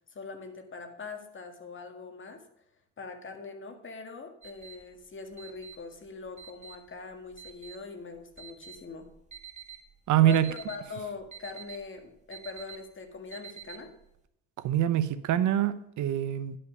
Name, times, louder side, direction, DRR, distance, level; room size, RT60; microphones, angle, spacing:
voice 1, 0.1-2.4 3.0-9.1 10.2-13.9, left 4 dB, 40° left, 5 dB, 2.0 m, -42 dB
sound 1, 4.4-14.2, right 8 dB, 25° right, 1.6 m, -48 dB
voice 2, 10.1-10.5 14.6-16.6, right 11 dB, 75° right, 14 dB, 0.7 m, -25 dB
11.0 x 5.6 x 6.6 m, 0.79 s
cardioid pair, 90°, 30 cm